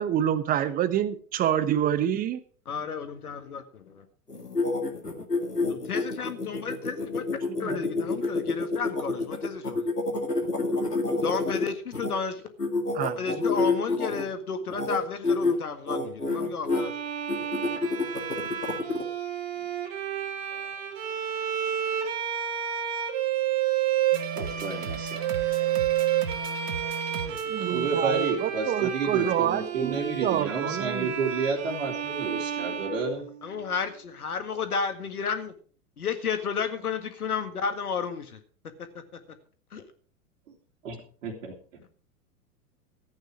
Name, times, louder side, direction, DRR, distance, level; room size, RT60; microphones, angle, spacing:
voice 1, 0.0-2.4 7.6-7.8 12.9-13.5 27.5-31.1, right 10 dB, 20° right, 15 dB, 0.8 m, -28 dB
voice 2, 2.7-4.1 5.7-7.2 7.6-9.9 11.2-12.4 13.2-17.0 33.4-35.5 36.0-38.4 38.8-39.2 39.7-39.8, left 6 dB, 70° left, 9 dB, 1.9 m, -32 dB
sound 1, 4.3-12.1 12.6-14.2 14.7-15.0 15.2-15.5 15.9-16.8 17.3-19.0, left 3 dB, 85° left, 2.2 m, -28 dB
Bowed string instrument, 16.7-33.7, right 10 dB, 35° right, 2.3 m, -30 dB
sound 2, 24.1-28.6, right 6 dB, 80° right, 1.5 m, -37 dB
voice 3, 24.4-25.3 26.1-26.2 27.5-33.3 40.8-41.8, right 4 dB, 55° right, 0 dB, 2.7 m, -31 dB
14.0 x 9.0 x 4.9 m, 0.43 s
figure-of-eight pair, 100°, 46 cm